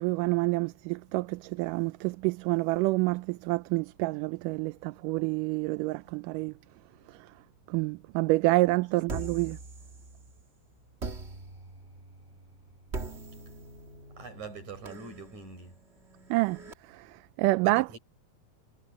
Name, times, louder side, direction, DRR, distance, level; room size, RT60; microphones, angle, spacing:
voice 1, 0.0-6.5 7.7-9.6 16.3-16.6 16.9-18.0, right 21 dB, 85° right, 2.1 m, -28 dB
sound 1, 9.1-10.4 11.0-16.7, right 3 dB, 30° right, 1.4 m, -42 dB
voice 2, 14.2-15.7 17.6-18.0, right 4 dB, 60° right, 7.7 m, -44 dB
omnidirectional pair, 3.7 m